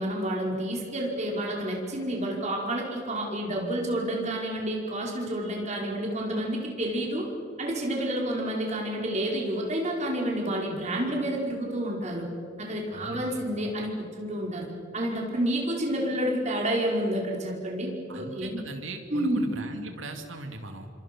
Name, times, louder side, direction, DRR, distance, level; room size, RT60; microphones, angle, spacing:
voice 1, 0.0-7.2 7.6-12.3 12.6-14.7 14.9-18.6 19.1-19.4, right 1 dB, 40° right, -1 dB, 4.8 m, -29 dB
voice 2, 12.9-13.4 18.1-20.9, right 2 dB, 90° right, 5 dB, 2.5 m, -39 dB
28.0 x 25.5 x 6.1 m, 2.5 s
head